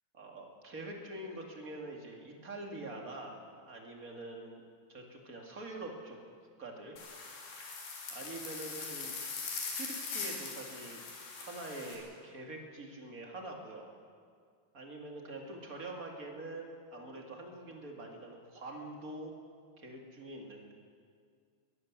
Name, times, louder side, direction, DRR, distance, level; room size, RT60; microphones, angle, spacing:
voice 1, 0.1-3.3 3.7-4.6 4.9-6.2 6.6-6.9 7.6-7.7 8.1-9.1 9.7-11.0 11.4-13.9 14.7-19.3 19.8-20.7, right 2 dB, 30° right, 1 dB, 2.1 m, -45 dB
sound 1, 7.0-12.0, left 4 dB, 75° left, 5.0 m, -41 dB
21.0 x 16.5 x 7.4 m, 2.1 s
omnidirectional pair, 4.4 m